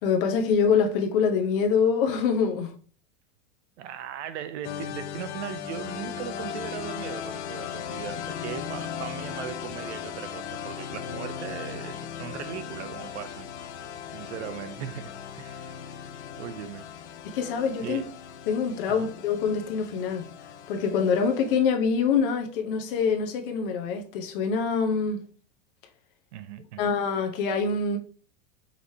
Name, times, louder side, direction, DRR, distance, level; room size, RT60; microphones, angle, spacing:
voice 1, 0.0-2.7 17.3-18.0 18.5-20.3 20.7-25.2 26.8-28.0, left 6 dB, 50° left, 0.9 m, -25 dB
voice 2, 3.8-13.5 14.1-15.8 16.4-16.9 17.8-18.1 18.9-19.1 26.3-26.9, right 9 dB, 75° right, 0.8 m, -38 dB
sound 1, 4.6-21.6, left 8 dB, 90° left, 0.6 m, -38 dB
5.3 x 3.3 x 2.7 m
supercardioid pair, 160°, 34 cm